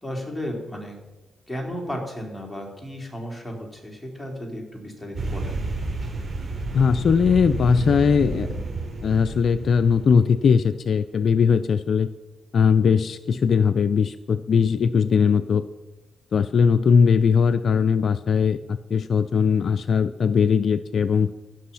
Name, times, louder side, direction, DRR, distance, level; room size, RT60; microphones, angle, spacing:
voice 1, 0.0-1.0 1.5-5.6, equal, 10° left, 0 dB, 3.9 m, -34 dB
sound 1, 5.1-10.3, right 2 dB, 45° right, 3.9 m, -30 dB
voice 2, 6.7-8.5 9.0-12.1 12.5-15.6 16.3-21.3, left 6 dB, 65° left, 13 dB, 0.4 m, -20 dB
16.5 x 6.3 x 5.7 m, 1.1 s
supercardioid pair, 55°, 0 cm